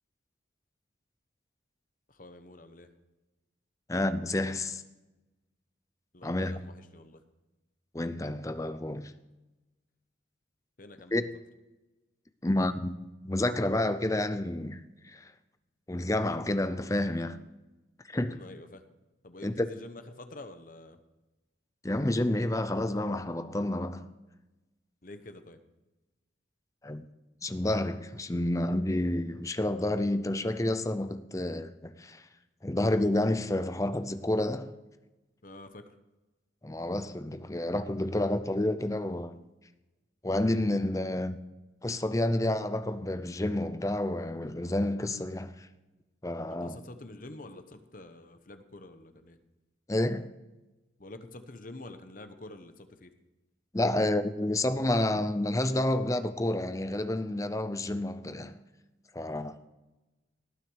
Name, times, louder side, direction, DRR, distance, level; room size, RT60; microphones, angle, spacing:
voice 1, 2.1-2.9 6.1-7.2 10.8-11.2 18.3-18.8 19.2-21.0 25.0-25.6 35.4-36.0 46.5-49.4 51.0-53.1, left 2 dB, 45° left, 1.0 m, -47 dB
voice 2, 3.9-4.8 6.2-6.6 7.9-9.1 11.1-11.3 12.4-12.9 13.2-15.3 15.9-17.4 18.1-18.4 19.4-19.7 21.8-24.1 26.8-27.1 27.4-32.2 32.6-34.8 36.6-39.4 40.2-41.4 41.8-45.7 46.2-46.8 49.9-50.3 53.7-58.6 59.1-59.6, left 1 dB, 15° left, 0.6 m, -29 dB
18.5 x 6.5 x 4.8 m
head